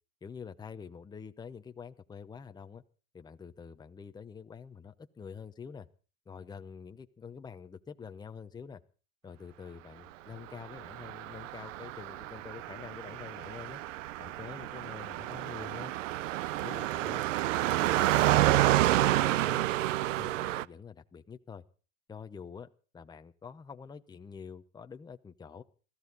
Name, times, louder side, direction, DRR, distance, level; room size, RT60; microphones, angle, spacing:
voice 1, 0.2-2.8 3.1-5.9 6.3-8.8 9.2-13.8 14.2-15.9 16.6-17.2 17.6-18.2 18.9-19.7 20.0-21.6 22.1-25.6, left 6 dB, 10° left, 8 dB, 0.9 m, -46 dB
Car passing by, 10.7-20.6, right 15 dB, 85° right, 0.7 m, -29 dB
21.5 x 14.5 x 4.1 m, 0.38 s
supercardioid pair, 125°, 37 cm